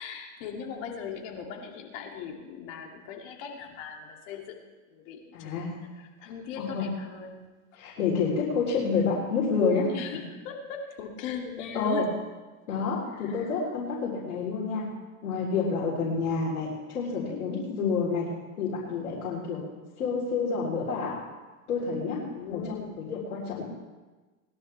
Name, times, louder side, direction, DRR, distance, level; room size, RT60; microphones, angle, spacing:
voice 1, 0.0-4.6 4.9-7.5 9.9-12.1 13.1-13.6 22.3-23.0, left 7 dB, 55° left, 1 dB, 2.8 m, -39 dB
voice 2, 5.3-5.7 6.2-6.3 6.6-6.8 7.8-9.9 11.7-12.1 12.7-14.9 15.2-18.3 18.6-19.6 20.0-21.2 21.7-22.2 22.5-22.6 23.0-23.6, left 5 dB, 80° left, -6 dB, 3.9 m, -28 dB
20.5 x 11.5 x 3.4 m, 1.3 s
hypercardioid pair, 120°, 43 cm